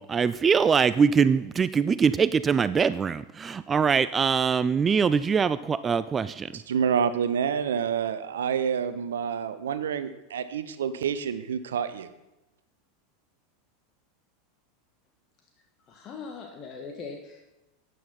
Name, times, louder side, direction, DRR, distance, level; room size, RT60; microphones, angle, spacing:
voice 1, 0.0-6.5, right 6 dB, 25° right, 16 dB, 0.3 m, -23 dB
voice 2, 6.5-12.1, right 7 dB, 70° right, 12 dB, 0.8 m, -28 dB
voice 3, 15.9-17.4, left 4 dB, 40° left, 2 dB, 1.6 m, -40 dB
12.0 x 9.3 x 4.2 m, 0.97 s
figure-of-eight pair, 85°, 0 cm